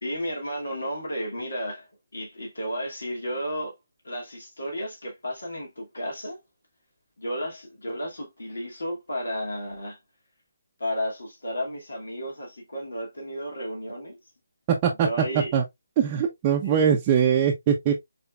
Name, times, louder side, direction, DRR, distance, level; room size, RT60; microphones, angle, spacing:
voice 1, 0.0-3.8 4.0-6.4 7.2-10.0 10.8-14.2 15.0-15.5 16.6-16.7, equal, 80° left, 2.3 m, -33 dB
voice 2, 14.7-15.1 15.3-15.6 16.0-17.9, right 8 dB, 25° right, 0.7 m, -22 dB
5.6 x 3.5 x 2.4 m
figure-of-eight pair, 150°, 0 cm